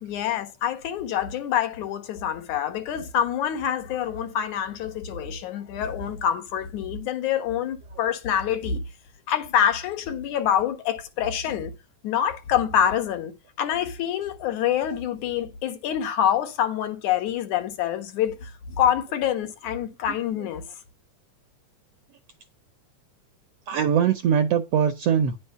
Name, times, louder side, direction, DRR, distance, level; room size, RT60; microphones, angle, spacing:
voice 1, 0.0-8.8 9.3-11.7 12.0-18.5 18.8-20.6, left 9 dB, 70° left, 2.6 m, -26 dB
voice 2, 23.7-25.4, right 8 dB, 70° right, 1.5 m, -22 dB
10.5 x 5.5 x 5.5 m
omnidirectional pair, 3.6 m